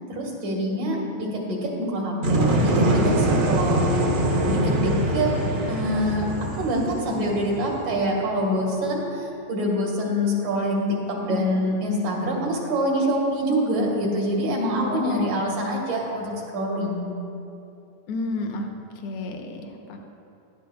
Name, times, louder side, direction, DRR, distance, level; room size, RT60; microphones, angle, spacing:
voice 1, 0.1-5.3 5.7-6.3 6.6-17.1, equal, 85° right, -3 dB, 3.6 m, -25 dB
sound 1, 2.2-8.1, right 1 dB, 65° right, 1.0 m, -23 dB
voice 2, 14.7-15.2 18.1-18.7 19.0-20.0, left 3 dB, 80° left, 3 dB, 1.3 m, -31 dB
17.5 x 12.5 x 2.3 m, 2.8 s
omnidirectional pair, 3.6 m